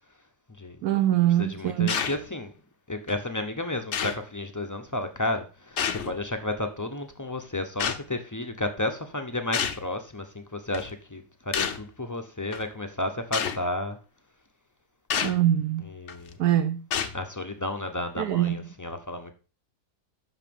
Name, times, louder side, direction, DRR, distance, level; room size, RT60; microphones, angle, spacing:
voice 1, 0.8-1.9 15.2-15.9 16.4-16.9 18.2-18.6, right 12 dB, 70° right, 1.0 m, -23 dB
voice 2, 1.4-2.5 2.9-14.0 15.8-16.4 17.1-19.3, left 2 dB, 20° left, 0.6 m, -32 dB
sound 1, 1.9-2.2 3.1-3.2 3.9-4.2 5.8-6.2 7.8-8.0 9.5-9.9 10.7-10.9 11.5-11.9 12.5-12.6 13.3-13.6 15.1-15.4 16.1-16.3 16.9-17.2, left 7 dB, 55° left, 1.0 m, -28 dB
8.2 x 6.0 x 5.3 m
omnidirectional pair, 1.8 m